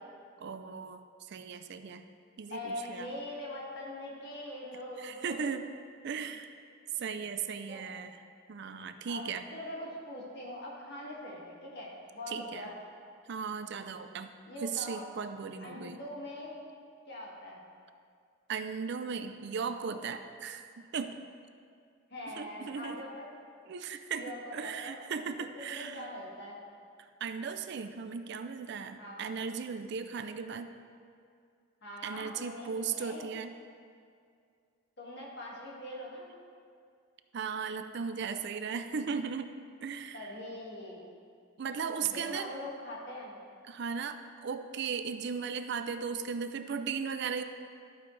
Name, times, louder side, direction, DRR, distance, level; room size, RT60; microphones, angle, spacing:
voice 1, 0.4-2.0 2.4-3.1 5.0-5.7 6.0-6.5 7.0-8.2 8.5-9.4 12.3-12.7 13.3-14.3 14.6-16.0 18.5-21.2 22.4-23.0 23.7-26.1 27.2-30.8 32.0-33.5 37.3-39.5 39.8-40.3 41.6-42.5 43.7-47.4, right 6 dB, 55° right, 9 dB, 0.4 m, -37 dB
voice 2, 2.5-5.5 7.7-7.8 9.1-12.8 14.5-15.1 15.6-16.6 17.1-17.6 22.1-23.3 24.1-25.0 25.4-26.6 29.0-29.3 31.8-33.3 35.0-36.3 40.1-41.0 42.0-43.4, left 1 dB, 50° left, -4 dB, 1.9 m, -42 dB
12.0 x 8.8 x 3.3 m, 2.3 s
head